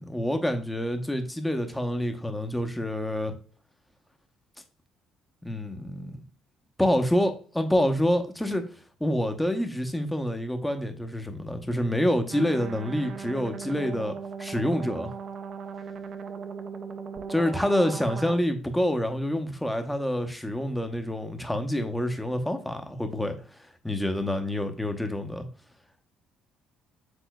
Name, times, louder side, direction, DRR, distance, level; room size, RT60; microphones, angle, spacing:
voice 1, 0.0-3.3 5.4-6.2 6.8-8.6 9.0-15.1 17.3-23.4 23.8-25.5, left 1 dB, 10° left, 6 dB, 0.8 m, -27 dB
sound 1, 12.3-18.4, right 5 dB, 50° right, 0.5 m, -38 dB
6.3 x 3.7 x 2.2 m, 0.40 s
hypercardioid pair, 50°, 0 cm